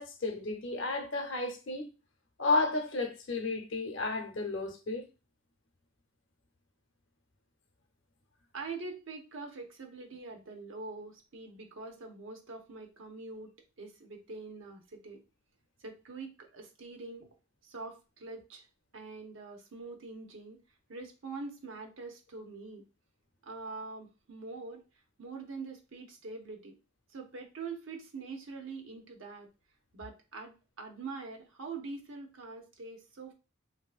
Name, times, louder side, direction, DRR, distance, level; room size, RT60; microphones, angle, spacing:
voice 1, 0.0-1.9 2.4-5.0, left 3 dB, 70° left, 0.6 m, -32 dB
voice 2, 8.5-13.5 13.8-15.2 15.8-17.3 17.6-18.7 18.9-20.6 20.9-22.8 23.4-24.8 25.2-26.7 27.1-29.5 29.9-33.3, right 3 dB, 75° right, 0.7 m, -44 dB
3.3 x 2.6 x 2.3 m
head